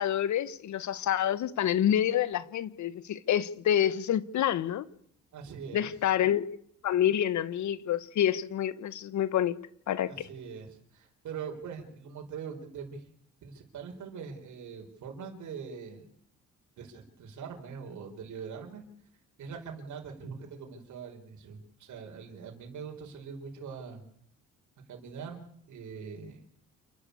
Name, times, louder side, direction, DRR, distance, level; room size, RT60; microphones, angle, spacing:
voice 1, 0.0-4.8 5.7-6.6 6.8-9.5 9.9-10.3, left 10 dB, 70° left, 1.3 m, -28 dB
voice 2, 5.3-5.9 10.1-13.0 13.4-16.1 16.8-18.8 19.4-24.0 24.9-26.5, right 6 dB, 75° right, 5.1 m, -42 dB
28.5 x 11.5 x 8.4 m
cardioid pair, 90°, 30 cm